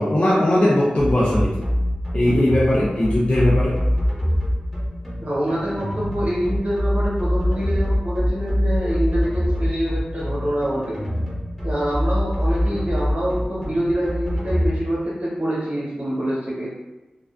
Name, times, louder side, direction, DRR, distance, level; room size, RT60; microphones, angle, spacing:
voice 1, 0.0-1.6 2.1-3.8, left 1 dB, 40° left, -7 dB, 0.4 m, -19 dB
sound 1, 1.0-14.7, equal, 5° left, 0.7 m, -23 dB
voice 2, 5.2-11.0 11.6-16.7, equal, 50° right, -7 dB, 1.0 m, -25 dB
2.3 x 2.3 x 2.4 m, 1.1 s
wide cardioid pair, 105°, 3 cm